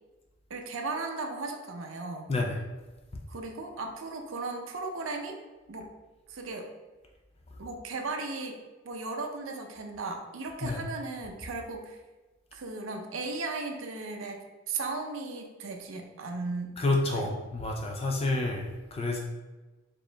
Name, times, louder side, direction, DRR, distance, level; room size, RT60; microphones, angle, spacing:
voice 1, 0.5-2.3 3.3-5.4 5.7-5.9 6.3-6.7 7.6-8.6 8.8-12.0 12.5-17.3, right 3 dB, 85° right, 3 dB, 0.6 m, -36 dB
voice 2, 2.3-2.6 10.6-10.8 16.8-19.2, left 2 dB, 30° left, 1 dB, 0.4 m, -29 dB
4.3 x 3.0 x 3.3 m, 1.2 s
head